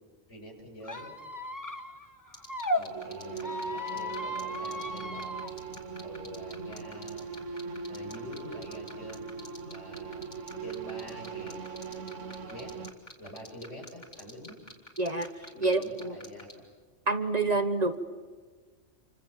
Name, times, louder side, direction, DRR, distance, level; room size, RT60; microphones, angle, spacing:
voice 1, 0.3-1.1 2.7-5.3 6.0-7.3 7.9-9.4 9.7-10.3 10.6-11.7 12.5-12.7 13.2-14.6 15.5-16.7 17.4-17.6, equal, 75° left, 1 dB, 6.8 m, -46 dB
Squeak, 0.8-2.8 3.4-5.5, left 1 dB, 15° left, 1.4 m, -35 dB
sound 1, 2.3-16.5, left 1 dB, 35° left, 4.2 m, -45 dB
sound 2, 2.9-12.9, right 5 dB, 85° right, 1.6 m, -40 dB
voice 2, 15.0-16.2 17.1-18.0, right 3 dB, 35° right, 8 dB, 1.2 m, -28 dB
29.0 x 25.5 x 7.5 m, 1.5 s
omnidirectional pair, 1.2 m